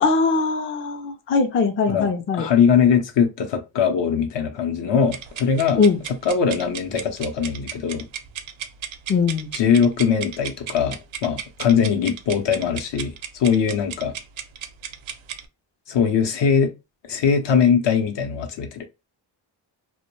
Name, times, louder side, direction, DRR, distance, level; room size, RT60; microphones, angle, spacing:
voice 1, 0.0-2.5 5.8-6.0 9.1-9.5, left 4 dB, 30° left, 0.4 m, -21 dB
voice 2, 1.9-5.8 6.2-8.0 9.5-14.2 15.9-16.7 17.1-18.9, left 7 dB, 60° left, 0.7 m, -21 dB
sound 1, 5.1-15.5, right 9 dB, 75° right, 0.5 m, -35 dB
2.2 x 2.1 x 3.0 m
cardioid pair, 90°, 48 cm